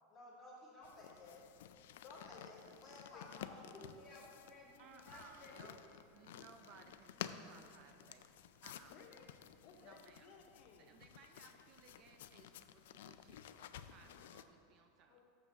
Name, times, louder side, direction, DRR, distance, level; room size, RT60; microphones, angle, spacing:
voice 1, 0.1-1.4 2.0-5.7, left 2 dB, 10° left, -7 dB, 2.2 m, -56 dB
sound 1, 0.8-14.4, left 10 dB, 80° left, 0.3 m, -53 dB
voice 2, 3.1-3.5 8.9-9.3 9.6-10.9 15.1-15.2, left 5 dB, 40° left, 2 dB, 0.7 m, -60 dB
voice 3, 4.8-5.8 6.1-9.0 9.8-10.3 10.8-15.2, right 6 dB, 35° right, 5 dB, 0.5 m, -62 dB
6.8 x 6.0 x 6.5 m, 2.5 s
supercardioid pair, 155°, 0 cm